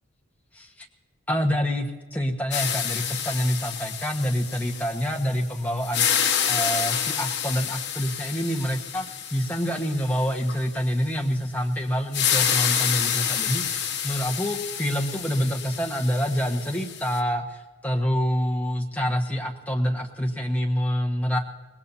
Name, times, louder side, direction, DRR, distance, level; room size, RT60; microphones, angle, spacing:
voice 1, 0.5-0.9 1.3-9.1 9.3-17.6 17.8-21.4, equal, 5° left, 1 dB, 1.3 m, -27 dB
sound 1, 2.5-5.4 5.8-10.6 12.1-17.2, left 8 dB, 50° left, 1.5 m, -28 dB
24.5 x 19.5 x 2.8 m, 1.2 s
head